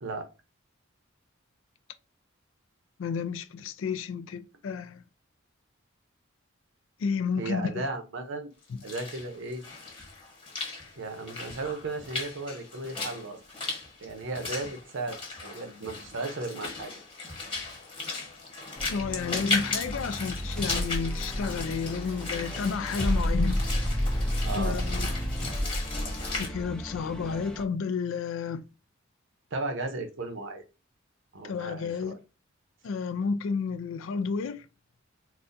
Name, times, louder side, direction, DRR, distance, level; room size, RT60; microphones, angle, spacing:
voice 1, 3.0-5.0 7.0-7.8 8.7-8.8 18.9-23.6 24.6-25.1 26.4-28.6 31.4-32.2 32.8-34.7, left 5 dB, 70° left, 0.4 m, -31 dB
voice 2, 7.4-8.5 8.8-9.6 11.0-13.4 14.0-16.9 24.4-24.8 29.5-30.6 31.3-32.2, right 3 dB, 65° right, 0.7 m, -35 dB
Walk footsteps / Splash splatter, 8.6-26.5, left 3 dB, 25° left, 1.4 m, -37 dB
sound 1, 18.8-27.6, equal, 5° left, 0.4 m, -31 dB
4.0 x 2.2 x 2.5 m
head